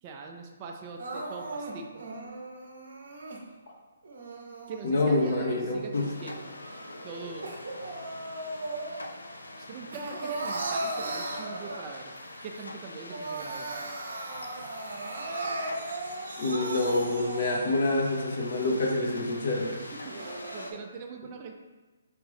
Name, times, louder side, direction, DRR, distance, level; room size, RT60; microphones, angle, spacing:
voice 1, 0.0-2.1 4.7-6.6 7.0-7.5 9.6-12.1 12.4-13.8 19.7-21.5, right 4 dB, 30° right, 2 dB, 0.4 m, -42 dB
Crying sobbing, 1.0-3.4 4.0-5.8 6.3-9.2 9.5-12.2 12.6-12.7 13.0-17.8 18.4-18.5 19.0-19.1 19.8-20.8, right 2 dB, 70° right, 0.7 m, -37 dB
voice 2, 4.8-6.1 16.4-19.7, left 2 dB, 60° left, -1 dB, 0.8 m, -27 dB
sound 1, 5.9-20.7, left 2 dB, 85° left, 0.4 m, -44 dB
4.7 x 2.5 x 3.4 m, 1.2 s
figure-of-eight pair, 140°, 0 cm